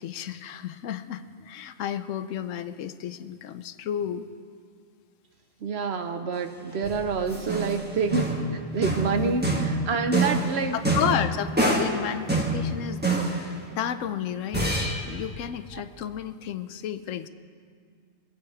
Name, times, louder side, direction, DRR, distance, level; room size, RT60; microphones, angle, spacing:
voice 1, 0.0-4.3 9.2-9.4 10.7-17.3, left 9 dB, 75° left, 11 dB, 0.9 m, -32 dB
voice 2, 5.6-8.2 8.5-10.8, right 4 dB, 55° right, 7 dB, 1.0 m, -27 dB
sound 1, 6.8-12.0 12.3-13.6 14.5-15.1, right 2 dB, 10° right, 1.2 m, -26 dB
22.5 x 8.5 x 4.8 m, 2.1 s
omnidirectional pair, 1.4 m